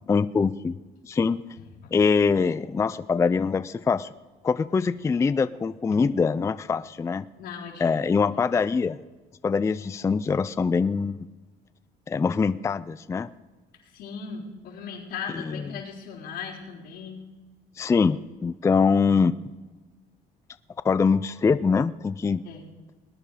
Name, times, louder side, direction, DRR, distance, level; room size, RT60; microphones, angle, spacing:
voice 1, 0.1-0.7 1.0-1.4 1.9-4.1 4.4-7.3 7.8-9.0 9.4-11.3 12.1-13.3 15.3-15.7 17.8-19.3 20.8-22.4, left 5 dB, 15° left, 14 dB, 0.3 m, -23 dB
voice 2, 7.4-7.9 13.9-17.2 22.4-22.6, left 6 dB, 85° left, -4 dB, 3.9 m, -38 dB
19.0 x 9.9 x 4.9 m, 1.3 s
cardioid pair, 110°, 17 cm